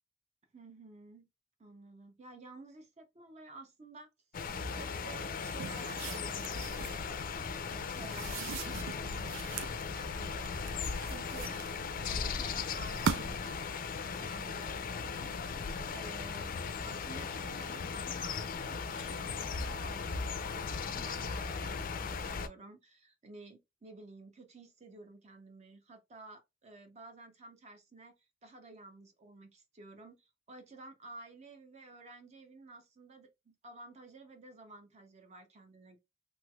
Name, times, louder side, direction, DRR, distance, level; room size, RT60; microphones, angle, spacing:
voice 1, 0.5-1.3 1.6-4.1 4.4-15.6 15.9-16.6 16.8-20.2 20.9-28.2 28.4-36.0, right 2 dB, 35° right, 0.5 m, -52 dB
sound 1, 4.3-22.5, left 5 dB, 45° left, 0.4 m, -37 dB
sound 2, 5.4-7.1 8.0-9.8 10.5-12.1 12.7-13.5, right 6 dB, 80° right, 0.4 m, -40 dB
3.1 x 3.1 x 2.2 m
head